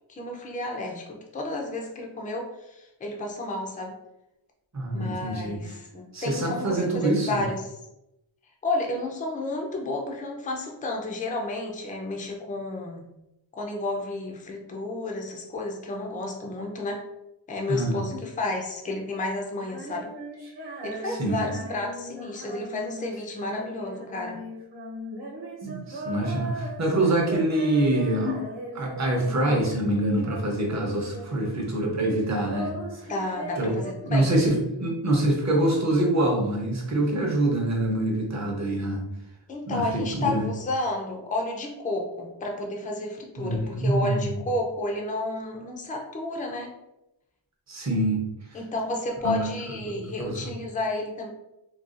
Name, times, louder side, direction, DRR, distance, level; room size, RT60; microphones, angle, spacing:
voice 1, 0.1-3.9 4.9-7.7 8.6-13.1 13.5-17.0 17.5-20.1 20.8-24.4 28.1-28.4 33.1-34.3 39.5-46.7 48.5-51.3, left 2 dB, 20° left, 1 dB, 0.4 m, -31 dB
voice 2, 4.7-5.7 6.1-7.4 17.7-18.0 21.1-21.4 25.6-28.3 28.8-32.7 33.0-33.1 33.6-33.7 34.0-39.0 39.7-40.5 43.4-44.4 47.7-48.2 48.5-48.6 49.2-49.5 49.8-50.5, right 1 dB, 35° right, 0 dB, 0.7 m, -25 dB
Female singing, 19.6-29.9 30.2-31.8 32.1-34.8, right 1 dB, 60° right, 1.0 m, -39 dB
3.9 x 2.3 x 2.4 m, 0.88 s
wide cardioid pair, 155°, 46 cm